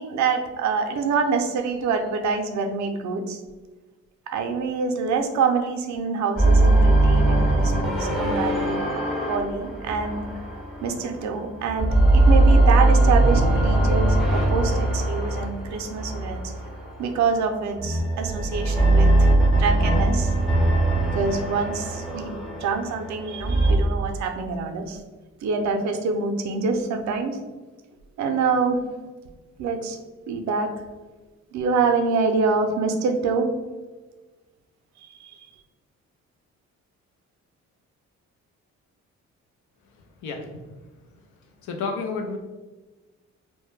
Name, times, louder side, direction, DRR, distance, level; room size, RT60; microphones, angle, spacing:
voice 1, 0.0-3.4 4.3-8.8 9.2-10.3 10.8-16.4 17.0-20.3 21.0-25.0 25.4-27.4 28.2-28.8 29.6-30.0 30.3-30.7 31.5-33.5 35.0-35.4, right 4 dB, 70° right, 5 dB, 0.5 m, -26 dB
sound 1, 6.4-11.3 11.7-17.0 17.7-23.8, right 2 dB, ahead, 0.6 m, -20 dB
voice 2, 39.8-42.4, left 4 dB, 75° left, 4 dB, 0.5 m, -33 dB
2.1 x 2.1 x 3.1 m, 1.2 s
cardioid pair, 90°, 30 cm